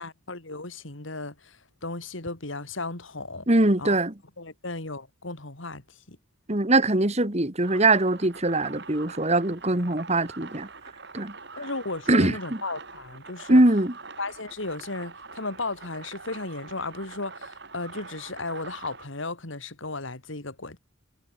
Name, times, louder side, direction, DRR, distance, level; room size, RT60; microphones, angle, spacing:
voice 1, 0.0-3.5 3.8-4.0 4.4-6.2 11.6-13.6 14.2-20.8, left 3 dB, 70° left, 3.2 m, -35 dB
voice 2, 3.5-4.1 6.5-10.7 11.1-11.3 12.1-12.4 13.5-13.9, right 2 dB, 30° right, 2.0 m, -22 dB
sound 1, 7.6-19.1, right 4 dB, 55° right, 5.9 m, -44 dB
head